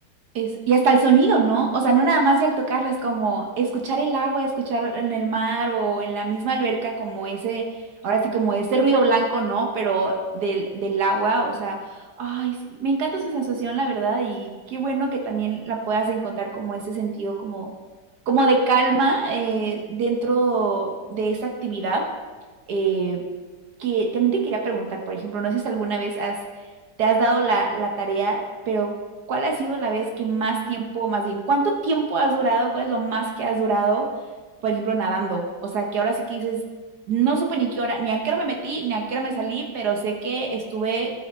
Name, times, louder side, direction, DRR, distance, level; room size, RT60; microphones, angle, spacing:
voice 1, 0.3-17.7 18.3-22.1 22.7-23.2 23.8-26.4 27.0-28.9 29.3-34.1 34.6-36.6 37.1-41.1, right 4 dB, 70° right, 1 dB, 1.5 m, -23 dB
13.0 x 6.2 x 4.2 m, 1.4 s
omnidirectional pair, 1.8 m